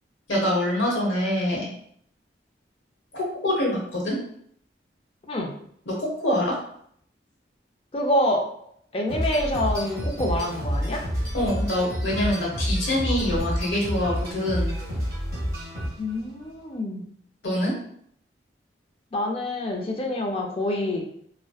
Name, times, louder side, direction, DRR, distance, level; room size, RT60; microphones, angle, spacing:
voice 1, 0.3-1.7 3.1-4.1 6.0-6.5 11.3-14.7 17.4-17.7, left 1 dB, 85° left, -3 dB, 1.0 m, -25 dB
voice 2, 7.9-8.5 8.9-11.0 16.0-17.0 19.1-21.0, left 1 dB, 30° left, 1 dB, 0.3 m, -26 dB
sound 1, 9.1-16.3, equal, 15° right, 0.8 m, -29 dB
2.7 x 2.1 x 2.2 m, 0.67 s
head